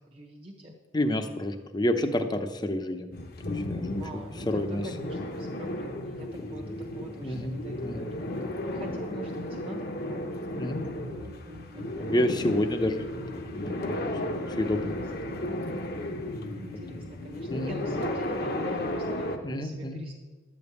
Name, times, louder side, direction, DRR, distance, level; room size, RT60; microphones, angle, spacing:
voice 1, 0.1-0.7 4.0-10.5 11.0-12.5 14.9-15.7 16.4-20.1, right 1 dB, 25° right, -1 dB, 1.0 m, -44 dB
voice 2, 0.9-3.1 3.5-4.8 6.6-6.7 7.2-8.1 10.5-10.8 12.0-14.0 14.3-14.9 16.2-17.0 17.5-17.8 19.4-20.0, left 1 dB, 20° left, 6 dB, 0.7 m, -30 dB
sound 1, 3.1-19.4, left 1 dB, 50° left, 1.0 m, -34 dB
sound 2, 10.2-17.4, equal, 60° right, 1.0 m, -52 dB
12.0 x 5.3 x 8.2 m, 1.4 s
head